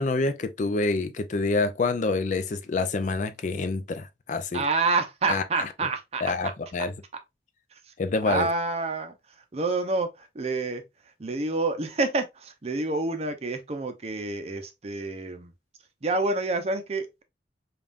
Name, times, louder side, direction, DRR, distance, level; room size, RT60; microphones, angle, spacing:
voice 1, 0.0-4.6 5.3-5.4 6.2-6.9 8.0-8.5, left 3 dB, 45° left, 0.4 m, -27 dB
voice 2, 4.5-6.5 7.7-7.9 8.3-15.5 16.0-17.2, right 3 dB, 35° right, 0.6 m, -28 dB
5.2 x 2.4 x 2.5 m
head